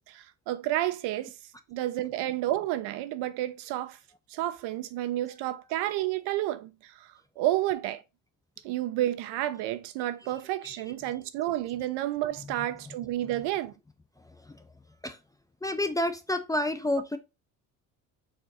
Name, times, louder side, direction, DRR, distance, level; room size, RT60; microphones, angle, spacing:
voice 1, 0.0-1.3 1.7-4.0 4.3-7.1 7.4-8.0 8.6-13.7, right 14 dB, 85° right, 0.6 m, -30 dB
voice 2, 14.2-14.7 15.0-15.2 15.6-17.2, left 1 dB, 10° left, 0.4 m, -30 dB
4.4 x 2.5 x 4.0 m
cardioid pair, 100°, 39 cm